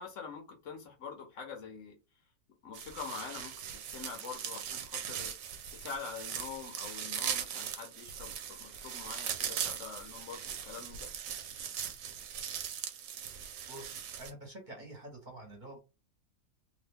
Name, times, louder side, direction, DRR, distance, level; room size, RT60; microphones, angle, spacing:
voice 1, 0.0-2.0 2.6-5.3 5.7-11.1, left 5 dB, 65° left, 3 dB, 1.1 m, -45 dB
sound 1, 2.7-14.3, right 8 dB, 70° right, 1.0 m, -40 dB
voice 2, 13.7-15.8, right 1 dB, 35° right, 1 dB, 1.1 m, -47 dB
2.9 x 2.4 x 3.4 m, 0.29 s
omnidirectional pair, 1.5 m